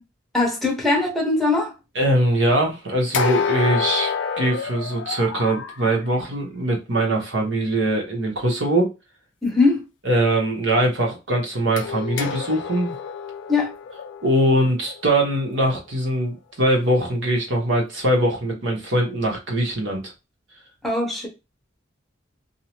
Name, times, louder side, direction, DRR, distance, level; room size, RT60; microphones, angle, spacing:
voice 1, 0.3-1.7 9.4-9.8 13.5-13.7 20.8-21.3, left 3 dB, ahead, 0.8 m, -20 dB
voice 2, 2.0-8.9 10.0-12.9 14.2-20.1, right 1 dB, 70° right, 1.0 m, -22 dB
sound 1, 3.1-5.8 11.8-15.8, left 6 dB, 65° left, 0.4 m, -28 dB
2.7 x 2.0 x 2.9 m
head